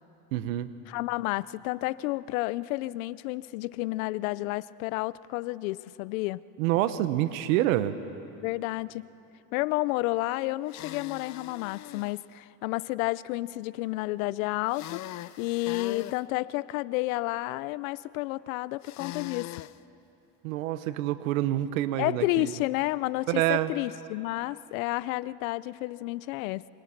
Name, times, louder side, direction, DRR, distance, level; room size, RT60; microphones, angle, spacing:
voice 1, 0.3-0.8 6.6-7.9 20.4-22.5 23.3-23.7, right 14 dB, 90° right, 12 dB, 1.2 m, -27 dB
voice 2, 0.9-6.4 8.4-9.1 9.5-15.0 15.4-19.5 22.0-26.7, left 19 dB, 85° left, 19 dB, 0.6 m, -31 dB
sound 1, 10.7-12.2 14.7-16.2 18.8-19.8, left 15 dB, 45° left, 0.6 m, -41 dB
26.5 x 25.5 x 5.9 m, 2.9 s
supercardioid pair, 100°, 40 cm